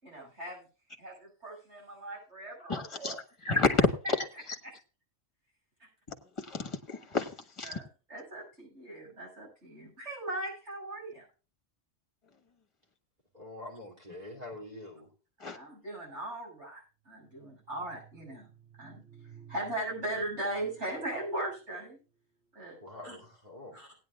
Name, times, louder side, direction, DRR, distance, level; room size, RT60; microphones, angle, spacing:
voice 1, 0.0-0.7 1.0-3.2 4.6-4.7 7.6-11.2 15.4-22.0 22.5-22.8 23.0-23.2 23.7-23.9, right 1 dB, 65° right, -4 dB, 7.6 m, -39 dB
voice 2, 2.7-3.1 3.4-3.9 6.5-7.3 7.6-7.8 15.4-15.6, left 4 dB, 25° left, 5 dB, 1.5 m, -28 dB
voice 3, 13.3-15.1 22.8-23.8, left 1 dB, 30° right, -3 dB, 3.1 m, -45 dB
18.0 x 10.0 x 2.4 m, 0.34 s
omnidirectional pair, 1.3 m